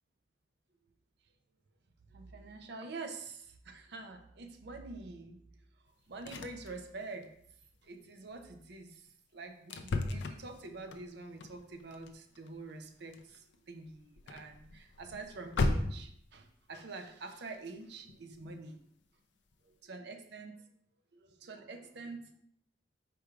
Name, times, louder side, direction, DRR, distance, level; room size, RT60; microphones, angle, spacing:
voice 1, 2.1-7.3 7.8-18.8 19.6-20.6 21.1-22.4, right 3 dB, 65° right, 6 dB, 0.6 m, -46 dB
sound 1, 5.9-6.0 6.1-6.7 7.0-7.3 7.6-7.9 8.3-8.5 9.1-9.2 9.7-16.3 18.1-18.6 19.0-19.1 19.5-19.6, left 2 dB, 70° left, 0.4 m, -37 dB
4.8 x 4.5 x 2.4 m, 0.69 s
head